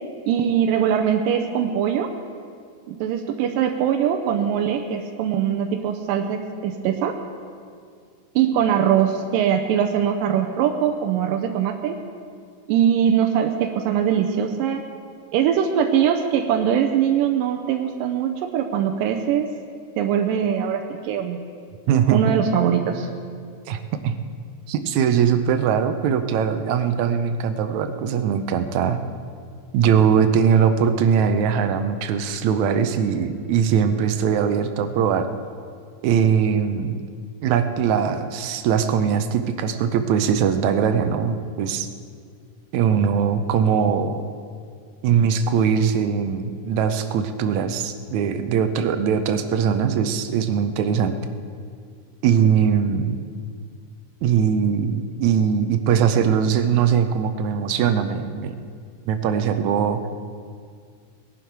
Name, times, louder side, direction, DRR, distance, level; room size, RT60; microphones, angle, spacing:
voice 1, 0.3-2.1 2.9-7.2 8.4-12.0 12.7-14.9 15.3-19.5 20.0-21.4 22.1-23.1, right 8 dB, 90° right, 4 dB, 2.4 m, -22 dB
voice 2, 21.9-22.4 23.7-24.1 24.7-29.0 29.7-35.3 36.0-37.0 37.4-41.9 42.7-44.2 45.0-51.2 52.2-53.3 54.2-58.6 59.1-60.0, right 7 dB, 75° right, 8 dB, 1.9 m, -21 dB
20.0 x 11.5 x 4.6 m, 2.2 s
omnidirectional pair, 3.8 m